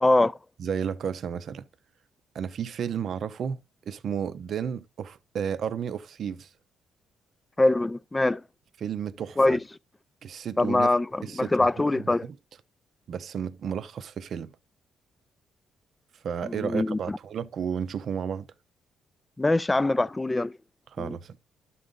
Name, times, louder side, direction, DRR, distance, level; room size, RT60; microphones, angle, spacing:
voice 1, 0.0-0.3 7.6-8.4 9.4-9.6 10.6-12.3 16.4-17.2 19.4-20.5 21.0-21.2, left 2 dB, 15° left, 0.3 m, -23 dB
voice 2, 0.6-1.6 2.3-3.6 3.9-6.5 8.8-9.6 10.2-10.9 11.2-11.7 12.0-12.4 13.1-14.5 16.2-18.5 21.0-21.4, right 7 dB, 60° right, 0.6 m, -32 dB
12.0 x 4.0 x 3.6 m
cardioid pair, 90°, 0 cm